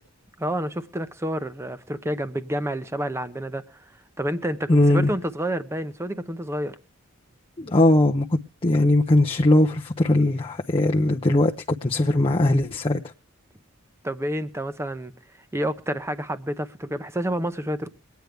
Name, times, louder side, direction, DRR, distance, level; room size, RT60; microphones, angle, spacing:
voice 1, 0.4-3.8 4.2-6.8 14.0-15.1 15.5-17.9, equal, 15° right, 0.7 m, -29 dB
voice 2, 4.7-5.1 7.6-13.0, left 1 dB, 25° left, 0.6 m, -20 dB
23.5 x 9.3 x 3.4 m
head